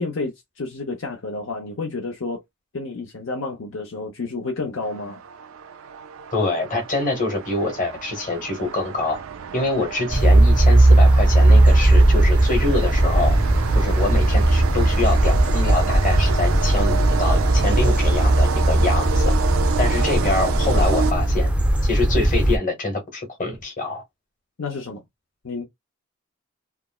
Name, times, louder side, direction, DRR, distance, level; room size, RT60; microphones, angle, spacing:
voice 1, 0.0-2.4 2.7-5.2 24.6-25.0 25.4-25.7, left 3 dB, 65° left, 0.7 m, -30 dB
sound 1, 4.8-21.6, right 6 dB, 70° right, 0.4 m, -30 dB
voice 2, 6.3-9.2 9.5-13.4 13.7-19.3 19.8-21.5 21.8-24.0, left 2 dB, 40° left, 1.3 m, -25 dB
sound 2, 10.1-22.6, right 1 dB, 5° right, 0.5 m, -17 dB
3.4 x 2.0 x 2.3 m
head